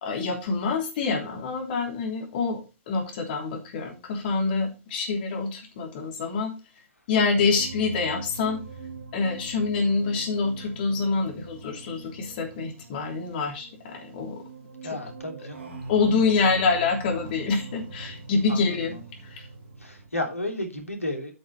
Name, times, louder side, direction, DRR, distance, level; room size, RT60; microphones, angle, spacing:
voice 1, 0.0-2.6 2.9-6.5 7.1-8.6 9.1-14.4 15.9-18.9 19.2-19.5, left 4 dB, 45° left, 3.4 m, -26 dB
sound 1, 7.3-20.1, right 3 dB, 60° right, 2.8 m, -42 dB
voice 2, 14.8-15.6 18.5-19.0 19.8-21.3, left 1 dB, 80° left, 2.9 m, -33 dB
8.7 x 7.2 x 4.2 m
figure-of-eight pair, 110°, 7 cm